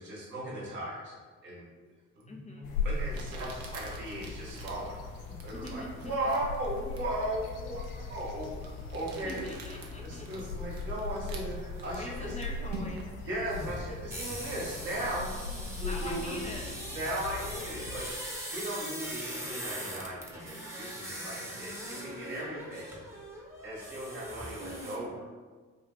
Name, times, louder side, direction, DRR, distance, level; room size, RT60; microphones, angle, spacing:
voice 1, 0.0-1.6 2.1-5.0 5.2-9.5 10.0-12.3 13.2-16.4 16.9-22.9 23.6-25.2, right 1 dB, 75° right, -6 dB, 1.4 m, -37 dB
Crumpling crinkling, 2.2-2.3 3.1-13.2, right 3 dB, 55° right, 0.7 m, -48 dB
voice 2, 2.3-2.7 5.5-6.1 9.2-10.5 11.8-13.3 15.8-16.7, left 1 dB, 15° left, 0 dB, 0.5 m, -43 dB
sound 1, 2.6-18.0, left 3 dB, 75° left, 0.5 m, -39 dB
sound 2, 13.5-25.0, equal, 5° right, 0.9 m, -41 dB
3.5 x 2.4 x 4.0 m, 1.4 s
figure-of-eight pair, 45°, 41 cm